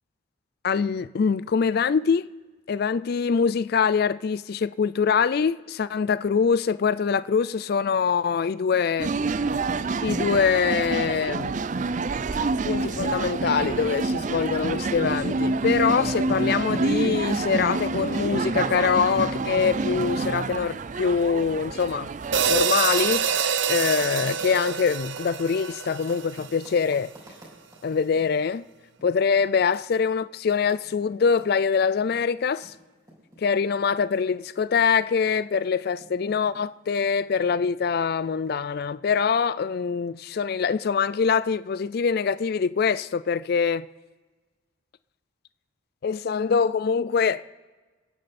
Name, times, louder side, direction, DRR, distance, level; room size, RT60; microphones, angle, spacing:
voice 1, 0.6-2.3 2.7-9.1 10.0-11.5 12.6-22.1 22.5-27.1 27.8-28.6 29.0-32.7 33.4-43.9 46.0-47.4, left 6 dB, 50° left, 0.3 m, -24 dB
sound 1, 9.0-22.7, right 3 dB, 40° right, 0.4 m, -27 dB
Typing, 20.0-22.4 22.7-28.6 29.0-29.1 29.4-34.5 34.8-37.3, right 1 dB, 20° right, 4.3 m, -53 dB
sound 2, 22.3-26.7, right 7 dB, 65° right, 0.8 m, -26 dB
27.0 x 9.9 x 4.2 m
head